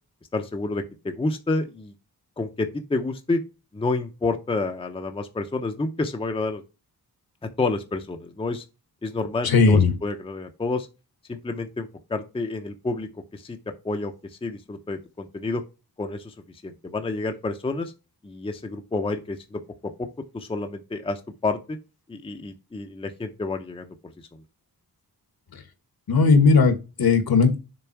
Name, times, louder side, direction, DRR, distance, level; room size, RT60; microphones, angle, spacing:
voice 1, 0.3-1.9 2.4-3.4 3.7-6.6 7.6-8.6 9.0-10.9 11.3-13.6 13.8-14.1 14.4-15.6 16.0-16.3 16.6-17.9 18.2-19.6 20.0-20.1 20.3-21.8 22.1-23.9, left 3 dB, 15° left, 6 dB, 0.5 m, -29 dB
voice 2, 9.4-9.9 26.1-27.6, left 4 dB, 70° left, 8 dB, 1.3 m, -17 dB
7.0 x 3.5 x 4.6 m, 0.29 s
wide cardioid pair, 165°, 38 cm